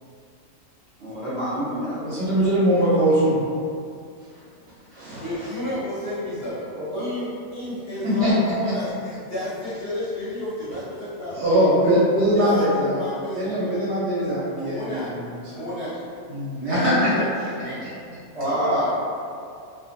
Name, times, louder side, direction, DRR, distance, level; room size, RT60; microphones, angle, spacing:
voice 1, 1.0-2.1 6.8-7.0 18.3-19.0, equal, 25° right, -13 dB, 0.8 m, -26 dB
voice 2, 2.0-3.4 4.9-5.2 8.0-8.3 11.3-13.0 13.3-15.2 15.5-15.6 16.3-17.1 17.6-17.9, equal, 60° right, -9 dB, 0.8 m, -21 dB
voice 3, 5.2-12.0 12.3-13.9 14.6-15.1 15.5-16.0 16.6-17.9 18.4-18.9, left 1 dB, 55° left, -11 dB, 0.7 m, -32 dB
2.4 x 2.2 x 2.5 m, 2.4 s
omnidirectional pair, 1.4 m